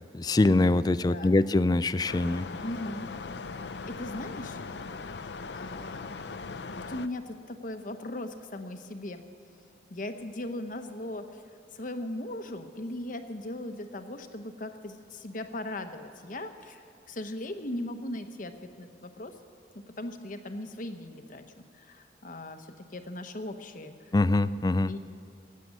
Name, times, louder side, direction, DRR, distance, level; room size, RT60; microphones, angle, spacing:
voice 1, 0.1-2.5 24.1-24.9, left 2 dB, 20° left, 15 dB, 0.3 m, -24 dB
voice 2, 1.0-1.4 2.6-3.1 3.9-4.6 5.5-6.3 6.7-9.2 9.9-11.4 11.7-19.3 19.7-24.1 24.8-25.0, left 1 dB, 45° left, 8 dB, 1.0 m, -38 dB
sound 1, 2.1-7.1, left 4 dB, 65° left, 0.6 m, -39 dB
17.0 x 7.7 x 9.6 m, 2.6 s
head